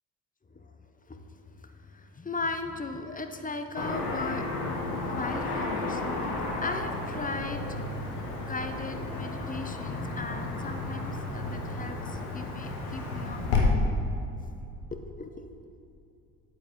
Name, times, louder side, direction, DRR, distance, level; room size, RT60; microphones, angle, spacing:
voice 1, 1.5-4.5 5.1-6.0 6.6-7.6 8.4-13.8 14.9-15.5, left 3 dB, 20° left, 7 dB, 0.8 m, -37 dB
Car passing by / Traffic noise roadway noise, 3.7-13.6, left 3 dB, 75° left, 1.4 m, -33 dB
8.5 x 8.3 x 3.7 m, 2.7 s
hypercardioid pair, 60°, 46 cm